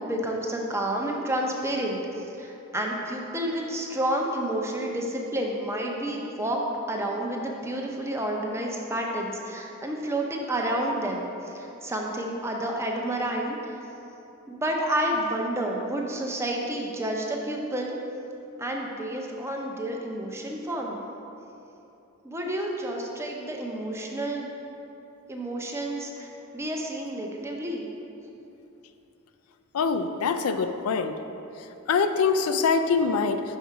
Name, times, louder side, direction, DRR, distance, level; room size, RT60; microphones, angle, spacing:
voice 1, 0.0-6.6 6.9-13.8 14.5-18.0 18.6-21.0 22.2-24.5 25.3-26.3 26.5-27.9, right 1 dB, 15° right, 0 dB, 0.6 m, -30 dB
voice 2, 29.7-31.2 31.9-33.4, left 5 dB, 90° left, 9 dB, 0.4 m, -24 dB
5.5 x 4.7 x 4.7 m, 2.8 s
head